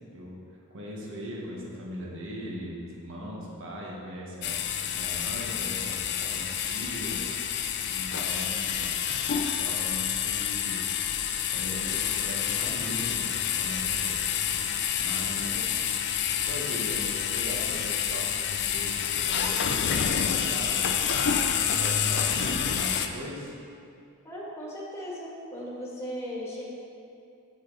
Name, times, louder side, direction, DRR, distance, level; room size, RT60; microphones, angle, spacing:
voice 1, 0.1-0.4 0.7-4.6 5.0-7.3 7.9-9.0 9.6-10.9 11.5-14.2 15.0-15.8 16.4-20.9 21.5-23.5, equal, 60° right, -3 dB, 1.4 m, -39 dB
sound 1, 4.4-23.1, left 8 dB, 50° left, 0.5 m, -28 dB
voice 2, 24.2-26.6, equal, 15° left, -5 dB, 1.6 m, -37 dB
7.9 x 6.9 x 4.0 m, 2.5 s
head